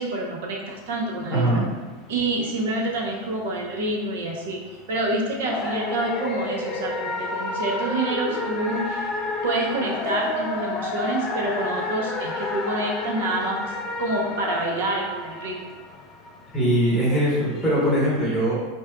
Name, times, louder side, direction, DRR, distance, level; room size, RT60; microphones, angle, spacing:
voice 1, 0.0-1.6 2.1-4.6 4.9-9.1 9.4-15.7, right 2 dB, 75° right, 0 dB, 0.7 m, -27 dB
sound 1, 0.7-18.0, left 3 dB, 20° left, 0.3 m, -31 dB
voice 2, 1.3-1.6 16.5-18.5, right 1 dB, 10° right, -9 dB, 0.9 m, -21 dB
4.1 x 2.4 x 2.2 m, 1.3 s
supercardioid pair, 170°, 0 cm